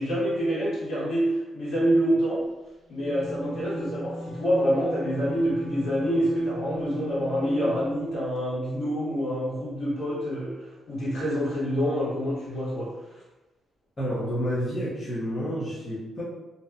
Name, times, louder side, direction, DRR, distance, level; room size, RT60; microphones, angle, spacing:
voice 1, 0.0-2.4 2.9-12.9, equal, 60° left, -10 dB, 1.4 m, -26 dB
Wind instrument woodwind instrument, 2.9-8.0, equal, 35° right, 0.3 m, -39 dB
voice 2, 14.0-16.2, equal, 20° left, -11 dB, 0.6 m, -29 dB
2.6 x 2.1 x 2.3 m, 1.1 s
wide cardioid pair, 170°, 0 cm